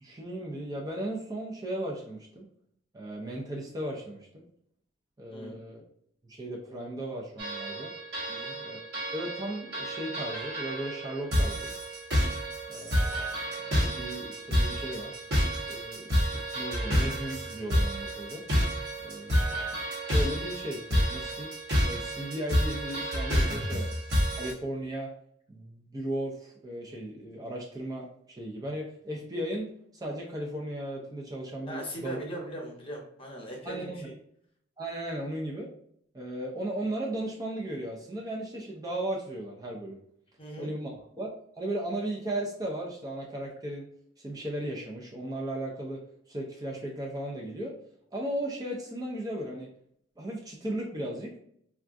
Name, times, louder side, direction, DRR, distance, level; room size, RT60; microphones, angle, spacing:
voice 1, 0.0-2.5 2.9-4.4 5.2-5.8 6.3-7.9 8.6-8.8 9.1-11.7 12.7-15.2 15.7-18.4 19.0-19.8 20.1-21.5 21.8-23.8 24.3-25.1 25.5-32.2 33.6-34.1 34.8-35.7 36.1-40.0 40.6-43.9 44.2-47.7 48.1-49.7 50.2-51.3, right 1 dB, 20° right, -1 dB, 0.4 m, -36 dB
sound 1, 7.4-24.5, equal, 60° right, 1.0 m, -29 dB
voice 2, 31.6-34.1 40.4-40.7, right 1 dB, 30° left, -1 dB, 0.9 m, -39 dB
3.5 x 2.3 x 2.5 m, 0.67 s
head